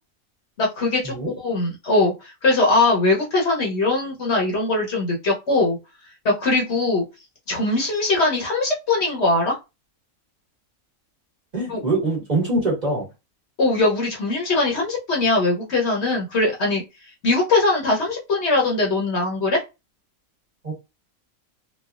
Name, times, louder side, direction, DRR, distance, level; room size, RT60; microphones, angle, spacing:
voice 1, 0.6-5.8 6.2-7.0 7.5-9.6 11.7-11.8 13.6-16.8 17.2-19.6, left 2 dB, 55° left, 1.0 m, -21 dB
voice 2, 11.5-13.0 20.6-20.7, right 2 dB, 30° right, 1.3 m, -23 dB
3.1 x 2.3 x 2.3 m
omnidirectional pair, 1.5 m